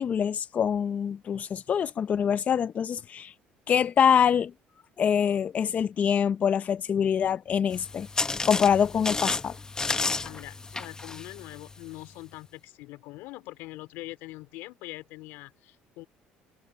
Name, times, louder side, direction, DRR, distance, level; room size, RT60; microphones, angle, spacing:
voice 1, 0.0-3.3 3.7-4.5 5.0-8.1 8.4-9.6, left 8 dB, 40° left, 0.6 m, -25 dB
sound 1, 7.7-12.1, left 3 dB, 20° left, 1.2 m, -32 dB
voice 2, 10.0-16.1, left 19 dB, 85° left, 3.0 m, -43 dB
cardioid pair, 100°, 4 cm